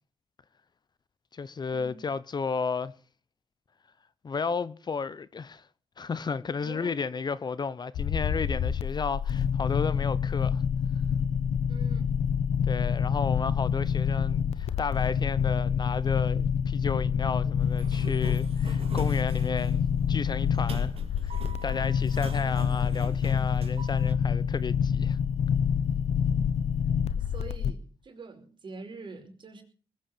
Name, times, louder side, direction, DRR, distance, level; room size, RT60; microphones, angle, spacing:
voice 1, 1.3-2.9 4.2-5.7 6.0-10.6 12.7-19.8 20.1-21.0 21.2-21.4 21.6-25.2, left 5 dB, 40° left, 0.8 m, -33 dB
voice 2, 6.6-6.9 11.7-12.1 26.3-26.4 27.1-29.6, right 3 dB, 50° right, 4.9 m, -45 dB
sound 1, 7.9-27.7, left 7 dB, 85° left, 1.0 m, -27 dB
Sliding door, 17.6-24.1, right 6 dB, 65° right, 2.5 m, -45 dB
20.0 x 8.7 x 6.8 m
cardioid pair, 80°, 11 cm